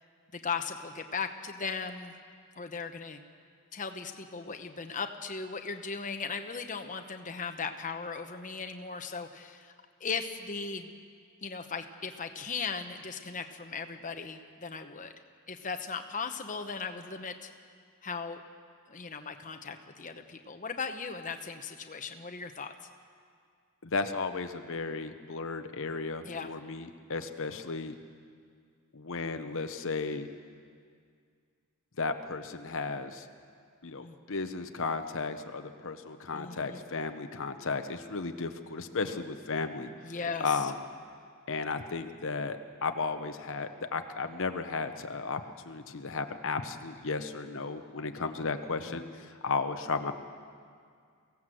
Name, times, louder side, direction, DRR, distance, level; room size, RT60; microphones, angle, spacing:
voice 1, 0.3-2.1 2.6-3.2 3.7-9.7 10.0-10.9 11.4-15.1 15.5-17.5 18.0-18.4 18.9-22.7 26.2-26.5 34.0-34.2 36.3-36.8 40.0-40.5, left 5 dB, 35° left, 6 dB, 1.0 m, -37 dB
voice 2, 23.8-27.9 28.9-30.3 32.0-33.3 33.8-40.1 40.4-40.8 41.5-50.2, left 4 dB, 60° left, 7 dB, 1.0 m, -34 dB
24.0 x 16.5 x 7.8 m, 2.2 s
head